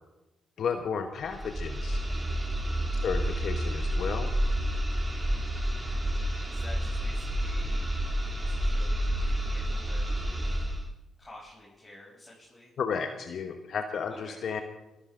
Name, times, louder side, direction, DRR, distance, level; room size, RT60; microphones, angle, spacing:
voice 1, 0.6-2.0 3.0-4.3 12.8-14.6, left 6 dB, 65° left, 6 dB, 1.1 m, -33 dB
sound 1, 1.2-10.9, equal, 25° right, 3.0 m, -29 dB
voice 2, 6.4-8.0 8.5-10.6 11.2-12.7 14.1-14.4, left 1 dB, 20° left, -6 dB, 7.4 m, -50 dB
23.0 x 13.0 x 3.8 m, 0.99 s
supercardioid pair, 55°, 0 cm